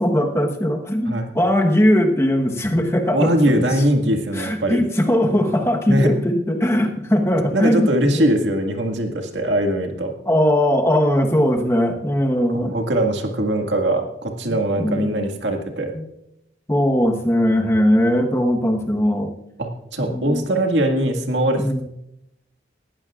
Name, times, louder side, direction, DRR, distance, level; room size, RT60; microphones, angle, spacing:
voice 1, 0.0-3.3 4.4-8.3 10.2-12.7 14.5-15.2 15.9-16.0 16.7-19.3 20.0-20.4 21.6-21.8, equal, 15° left, 3 dB, 1.2 m, -19 dB
voice 2, 3.1-4.8 5.9-6.1 7.5-10.1 12.5-15.9 19.6-21.8, right 1 dB, 85° right, 3 dB, 1.9 m, -21 dB
19.5 x 15.0 x 2.5 m, 0.81 s
head